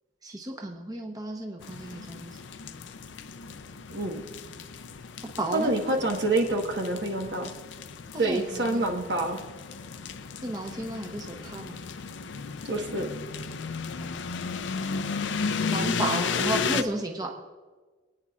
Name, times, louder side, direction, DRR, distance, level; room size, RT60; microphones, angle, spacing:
voice 1, 0.2-2.4 5.4-5.7 8.2-8.9 10.4-11.8 15.7-17.3, right 1 dB, 20° right, 1 dB, 0.8 m, -33 dB
sound 1, 1.6-16.8, left 5 dB, 70° left, 0.5 m, -34 dB
voice 2, 3.9-4.2 5.5-7.5 8.2-9.4 12.7-13.1, right 2 dB, 60° right, 3 dB, 1.3 m, -27 dB
25.5 x 9.6 x 2.4 m, 1.3 s
head